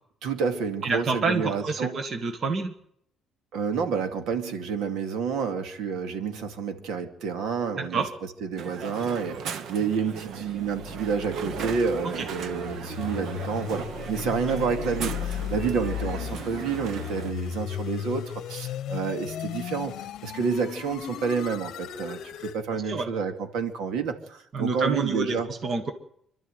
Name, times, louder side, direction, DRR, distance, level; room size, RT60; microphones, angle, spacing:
voice 1, 0.2-2.0 3.5-8.0 8.4-19.9 20.2-25.5, right 5 dB, 80° right, 6 dB, 2.4 m, -29 dB
voice 2, 0.8-2.7 7.7-8.1 12.0-12.3 22.7-23.1 24.5-25.9, right 4 dB, 30° right, 7 dB, 1.6 m, -28 dB
Crowd, 8.6-17.3, right 7 dB, 50° right, 1.0 m, -37 dB
sound 1, 10.4-22.6, left 11 dB, 60° left, 0.9 m, -36 dB
26.5 x 12.5 x 8.0 m, 0.71 s
cardioid pair, 180°, 0 cm